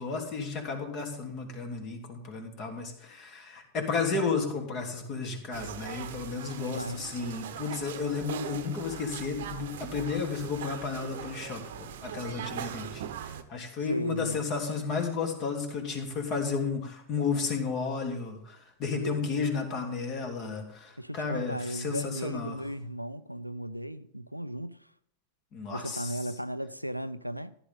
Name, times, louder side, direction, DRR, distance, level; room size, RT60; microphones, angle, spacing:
voice 1, 0.0-22.6 25.5-26.3, left 5 dB, 35° left, 3.0 m, -33 dB
sound 1, 5.5-13.4, right 10 dB, 55° right, 1.0 m, -41 dB
voice 2, 6.6-7.0 13.9-14.4 19.0-19.3 21.0-24.9 25.7-27.6, equal, 90° right, 0.5 m, -36 dB
14.5 x 11.0 x 3.9 m
figure-of-eight pair, 90°, 0 cm